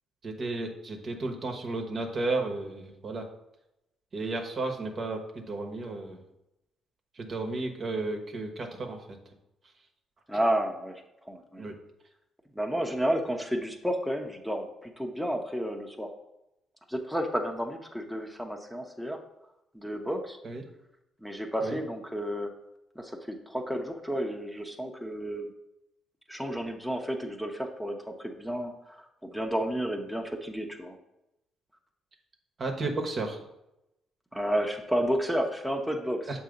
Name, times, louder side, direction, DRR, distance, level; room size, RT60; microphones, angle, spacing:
voice 1, 0.2-3.3 4.1-6.2 7.2-9.2 11.6-11.7 20.4-20.6 21.6-21.8 32.6-33.4 36.3-36.4, right 2 dB, 50° right, 3 dB, 1.0 m, -33 dB
voice 2, 10.3-11.0 11.3-11.7 12.5-16.1 16.9-19.2 19.7-20.4 21.2-22.5 22.9-25.5 26.3-31.0 34.3-36.4, equal, ahead, 2 dB, 0.8 m, -31 dB
6.7 x 2.8 x 5.1 m, 0.87 s
supercardioid pair, 60°, 0 cm